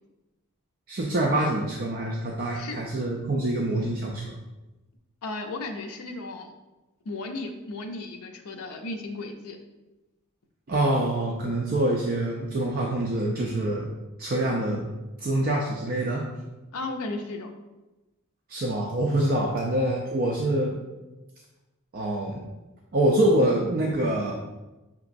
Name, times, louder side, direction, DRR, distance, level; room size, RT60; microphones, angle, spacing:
voice 1, 0.9-4.3 10.7-13.9 14.2-14.9 15.2-16.3 18.5-20.8 21.9-22.5 22.9-24.3, right 1 dB, 40° right, -1 dB, 0.4 m, -25 dB
voice 2, 5.2-6.5 7.1-9.6 16.7-17.5, left 2 dB, 80° left, 4 dB, 0.5 m, -35 dB
5.8 x 2.9 x 2.5 m, 1.1 s
head